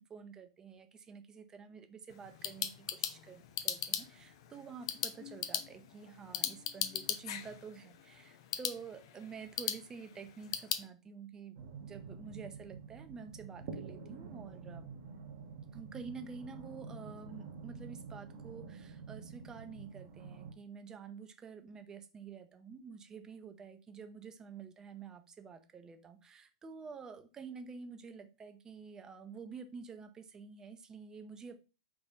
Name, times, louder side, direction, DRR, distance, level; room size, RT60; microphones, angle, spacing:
voice 1, 0.1-14.9 15.7-31.6, right 5 dB, 20° right, 0.6 m, -49 dB
sound 1, 2.1-10.9, left 10 dB, 55° left, 0.5 m, -39 dB
sound 2, 11.5-20.5, right 5 dB, 50° right, 0.8 m, -48 dB
3.5 x 2.5 x 3.8 m
hypercardioid pair, 110°, 3 cm